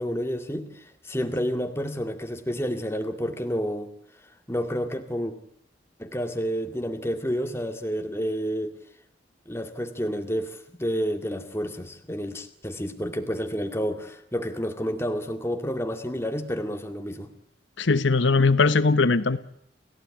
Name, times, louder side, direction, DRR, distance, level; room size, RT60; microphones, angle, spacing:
voice 1, 0.0-3.9 4.5-5.3 6.0-8.7 9.5-17.3, equal, 15° left, 6 dB, 2.3 m, -30 dB
voice 2, 17.8-19.4, left 3 dB, 80° left, 13 dB, 1.0 m, -20 dB
29.0 x 16.0 x 10.0 m, 0.72 s
head